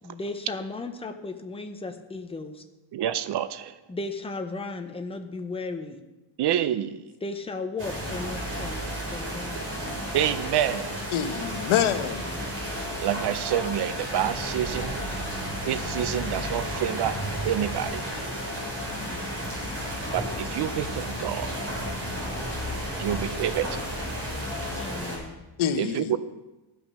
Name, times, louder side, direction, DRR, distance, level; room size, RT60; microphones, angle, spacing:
voice 1, 0.0-2.6 3.9-6.0 7.2-8.8 9.1-9.6 18.9-19.3 24.8-25.4, left 3 dB, 10° left, 0.7 m, -35 dB
voice 2, 2.9-3.7 6.4-7.0 10.1-11.0 13.0-14.9 15.7-17.2 17.4-18.0 20.1-21.5 23.0-23.7 25.8-26.2, right 11 dB, 55° right, 0.6 m, -27 dB
sound 1, 7.8-25.2, equal, 25° right, 4.4 m, -32 dB
voice 3, 11.1-12.3 25.6-26.2, left 9 dB, 80° left, 1.0 m, -26 dB
14.5 x 6.0 x 5.4 m
cardioid pair, 165°, 49 cm